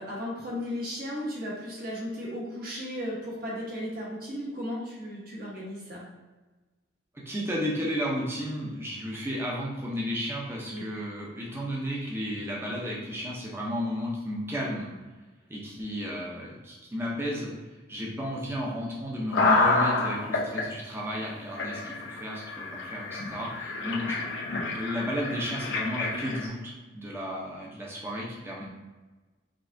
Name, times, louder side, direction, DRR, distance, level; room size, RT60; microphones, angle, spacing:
voice 1, 0.0-6.0 10.7-10.9 24.0-24.1, equal, 50° right, -5 dB, 1.4 m, -35 dB
voice 2, 7.3-14.9 15.5-17.5 17.9-24.2 24.7-28.7, equal, 10° right, -4 dB, 0.8 m, -33 dB
sound 1, 19.3-20.6 21.2-21.3 21.6-26.5, left 3 dB, 65° left, 0.8 m, -28 dB
5.3 x 3.4 x 2.7 m, 1.2 s
head